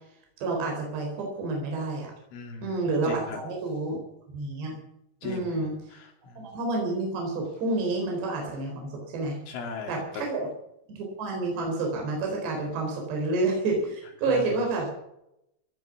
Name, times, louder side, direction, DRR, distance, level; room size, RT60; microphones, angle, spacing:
voice 1, 0.4-2.1 2.6-4.0 4.3-4.8 5.2-5.7 6.4-9.4 9.9-10.5 10.9-14.9, right 3 dB, 60° right, 0 dB, 6.2 m, -29 dB
voice 2, 2.3-3.4 5.2-6.4 9.5-10.0 14.3-14.5, left 5 dB, 80° left, 2 dB, 5.4 m, -39 dB
17.5 x 10.5 x 7.1 m, 0.81 s
omnidirectional pair, 5.5 m